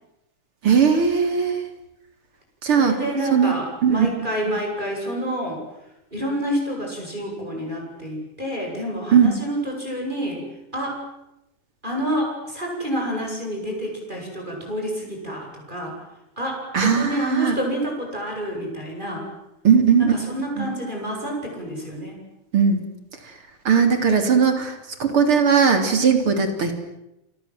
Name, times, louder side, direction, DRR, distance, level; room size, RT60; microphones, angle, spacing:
voice 1, 0.6-1.6 2.6-3.0 3.3-3.5 3.8-4.1 9.1-9.4 16.7-17.6 19.6-20.1 20.6-20.7 22.5-22.8 23.7-24.7 25.0-26.7, right 6 dB, 40° right, 7 dB, 4.2 m, -18 dB
voice 2, 2.6-5.6 6.1-10.4 10.7-11.0 11.8-16.0 16.4-19.3 20.0-22.1, equal, 15° right, 0 dB, 8.2 m, -28 dB
29.5 x 24.5 x 7.8 m, 0.90 s
omnidirectional pair, 3.8 m